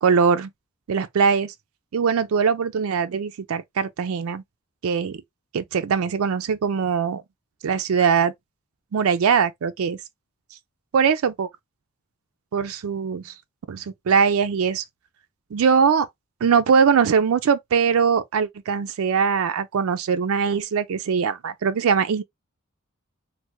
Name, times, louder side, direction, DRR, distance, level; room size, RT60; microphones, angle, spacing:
voice 1, 0.0-0.5 0.9-1.5 1.9-4.4 4.8-5.2 5.5-7.2 7.6-8.3 8.9-10.0 10.9-11.5 12.5-13.3 13.7-14.8 15.5-16.1 16.4-22.2, right 6 dB, 75° right, 0.4 m, -21 dB
3.3 x 2.2 x 2.9 m
head